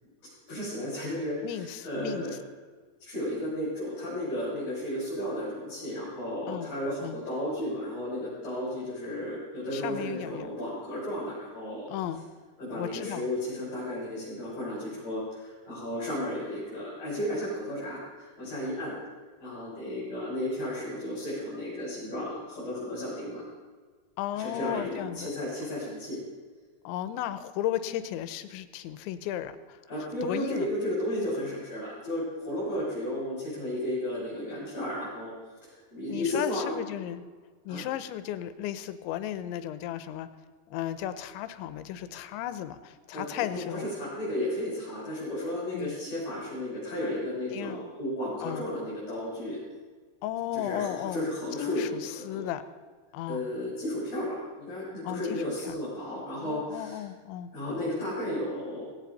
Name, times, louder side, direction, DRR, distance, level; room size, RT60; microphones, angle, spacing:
voice 1, 0.5-2.3 3.0-11.9 12.6-18.9 19.4-23.4 24.3-26.2 29.9-35.3 35.6-36.8 37.7-37.8 43.1-43.2 43.7-49.6 50.5-51.9 52.3-52.4 53.3-57.0 57.5-58.9, left 1 dB, 35° left, -9 dB, 7.3 m, -33 dB
voice 2, 1.4-2.2 6.5-6.7 7.0-7.2 9.7-10.5 11.9-12.3 12.7-13.3 24.2-25.3 26.8-30.7 36.1-37.3 37.7-40.3 40.7-43.9 45.7-46.0 47.5-47.9 48.4-48.7 50.2-51.2 51.6-52.6 53.1-53.5 55.0-55.7 56.4-57.5, left 12 dB, 90° left, 12 dB, 3.1 m, -35 dB
17.5 x 17.0 x 4.1 m, 1.5 s
omnidirectional pair, 5.2 m